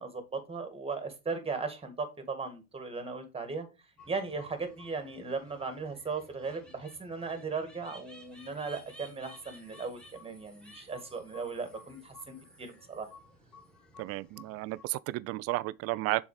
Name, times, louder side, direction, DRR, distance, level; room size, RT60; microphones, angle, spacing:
voice 1, 0.0-3.7 4.1-13.1, right 4 dB, 15° right, 1.8 m, -37 dB
sound 1, 4.0-14.8, left 1 dB, ahead, 2.1 m, -55 dB
voice 2, 14.0-16.2, right 19 dB, 40° right, 0.4 m, -33 dB
7.0 x 4.0 x 4.8 m
hypercardioid pair, 90°, 41 cm